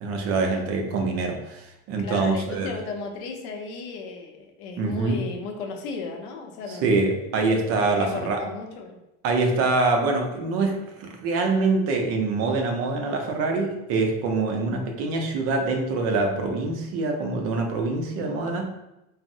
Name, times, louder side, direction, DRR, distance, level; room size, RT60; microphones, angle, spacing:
voice 1, 0.0-2.7 4.8-5.3 6.8-8.4 9.2-18.7, right 3 dB, 45° right, 2 dB, 0.5 m, -25 dB
voice 2, 2.0-6.9 7.8-9.0, left 4 dB, 85° left, 3 dB, 0.7 m, -34 dB
3.9 x 2.0 x 2.6 m, 0.91 s
cardioid pair, 160°, 32 cm